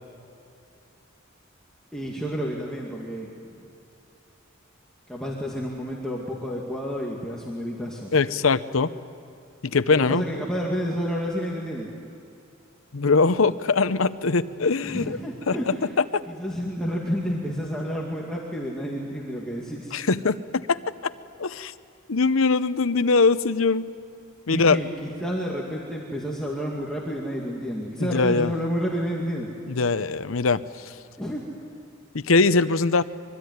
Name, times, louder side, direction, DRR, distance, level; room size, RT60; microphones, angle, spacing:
voice 1, 1.9-3.3 5.1-8.1 9.9-11.9 14.8-15.9 16.3-19.9 24.5-29.5 31.2-31.4, equal, 5° left, -4 dB, 2.3 m, -30 dB
voice 2, 8.1-8.9 9.6-10.2 12.9-15.2 15.5-16.2 19.9-20.8 21.4-21.7 22.1-23.9 24.5-24.8 28.0-28.5 29.7-30.6 32.1-33.0, left 4 dB, 80° left, 13 dB, 0.8 m, -22 dB
25.0 x 23.0 x 9.5 m, 2.6 s
head